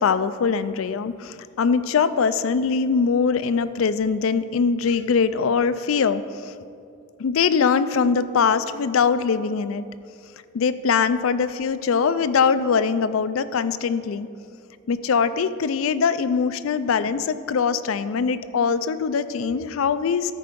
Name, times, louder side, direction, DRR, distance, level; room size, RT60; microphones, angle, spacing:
voice 1, 0.0-6.5 7.2-9.8 10.5-14.3 14.9-20.3, left 5 dB, 85° left, 13 dB, 0.4 m, -22 dB
13.5 x 4.6 x 5.1 m, 2.5 s
head